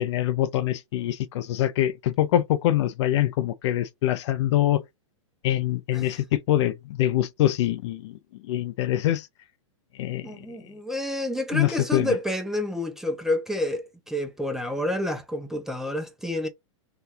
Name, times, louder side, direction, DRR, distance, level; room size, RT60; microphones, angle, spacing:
voice 1, 0.0-4.8 5.4-8.2 8.5-9.3 10.0-10.3 11.5-12.1, left 13 dB, 60° left, 0.4 m, -24 dB
voice 2, 10.2-16.5, left 1 dB, 5° right, 0.4 m, -29 dB
2.7 x 2.3 x 3.4 m
hypercardioid pair, 140°, 17 cm